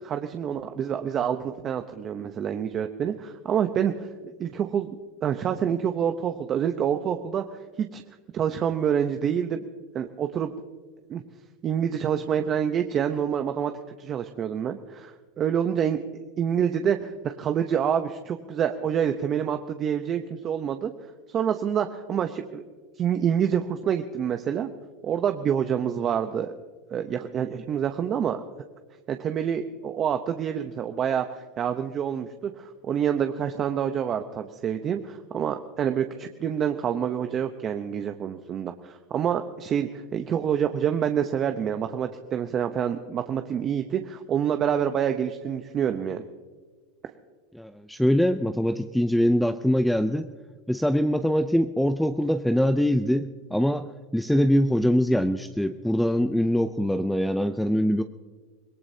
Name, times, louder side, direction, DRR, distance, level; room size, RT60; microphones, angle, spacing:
voice 1, 0.0-4.1 4.4-4.9 5.2-7.4 7.8-8.0 8.3-9.6 9.9-10.5 11.1-11.2 11.6-13.7 14.0-16.0 16.4-20.9 21.3-22.6 23.0-24.7 25.0-26.5 26.9-28.4 29.1-46.2, right 8 dB, 35° right, 7 dB, 0.8 m, -27 dB
voice 2, 47.5-50.3 50.7-53.9 54.1-58.0, equal, ahead, 9 dB, 0.5 m, -23 dB
25.0 x 18.5 x 2.8 m, 1.4 s
supercardioid pair, 115°, 0 cm